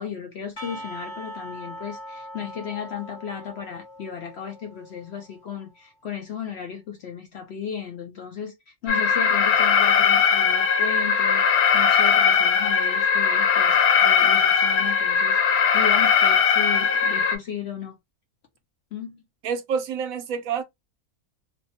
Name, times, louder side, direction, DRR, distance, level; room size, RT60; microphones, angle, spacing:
voice 1, 0.0-18.0 18.9-19.2, left 8 dB, 65° left, 0.7 m, -35 dB
Percussion, 0.6-5.4, equal, 25° left, 0.5 m, -41 dB
Alarm, 8.9-17.4, left 7 dB, 80° left, 1.1 m, -19 dB
voice 2, 19.4-20.6, right 6 dB, 75° right, 1.0 m, -27 dB
2.6 x 2.1 x 2.7 m
omnidirectional pair, 1.5 m